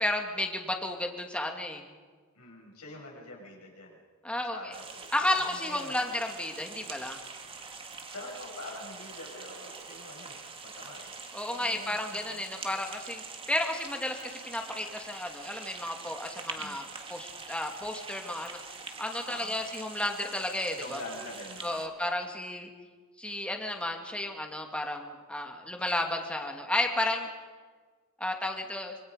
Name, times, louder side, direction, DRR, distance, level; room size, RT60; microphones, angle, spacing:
voice 1, 0.0-1.8 4.2-4.7 5.1-7.2 11.3-18.6 19.0-21.0 21.6-22.7 23.2-27.3 28.2-28.9, left 1 dB, 5° left, 2 dB, 2.2 m, -32 dB
voice 2, 2.3-4.0 4.4-5.1 5.5-6.0 8.0-10.4 10.6-11.1 11.5-12.4 16.6-16.8 19.2-19.5 20.8-22.0, left 1 dB, 85° left, -1 dB, 6.7 m, -45 dB
sound 1, 4.7-21.9, right 4 dB, 25° right, 1.9 m, -44 dB
26.0 x 25.5 x 5.1 m, 1.5 s
head